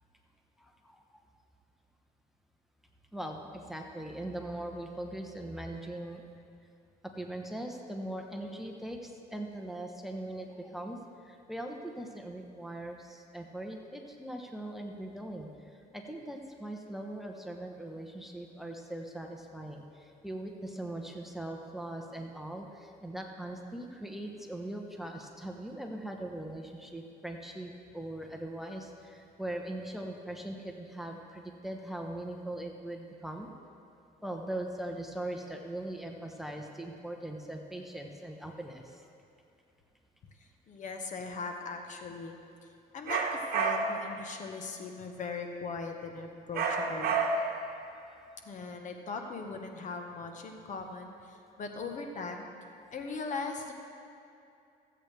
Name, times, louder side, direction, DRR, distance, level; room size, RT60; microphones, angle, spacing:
voice 1, 0.6-1.2 3.1-6.2 7.2-33.5 34.2-39.1, right 1 dB, ahead, 2 dB, 0.8 m, -40 dB
voice 2, 40.4-42.4 42.6-42.7 42.9-47.2 48.4-52.5 52.9-53.7, left 4 dB, 45° left, 4 dB, 1.0 m, -39 dB
sound 1, 43.1-44.1 46.5-47.6, right 4 dB, 65° right, 1.1 m, -30 dB
15.5 x 8.0 x 3.3 m, 2.6 s
cardioid pair, 110°, 17 cm